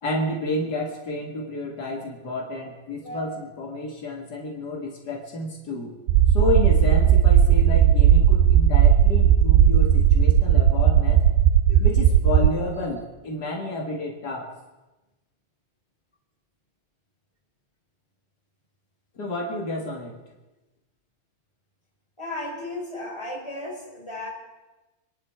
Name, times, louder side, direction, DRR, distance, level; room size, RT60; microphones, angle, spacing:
voice 1, 0.0-5.9 6.3-11.2 11.7-14.5 19.1-20.2, left 2 dB, 80° left, 0 dB, 0.9 m, -30 dB
voice 2, 3.0-3.5 22.2-24.3, left 1 dB, 5° left, -3 dB, 4.0 m, -35 dB
sound 1, 6.1-12.5, right 10 dB, 80° right, 2.7 m, -16 dB
28.0 x 11.5 x 4.5 m, 1.1 s
omnidirectional pair, 4.9 m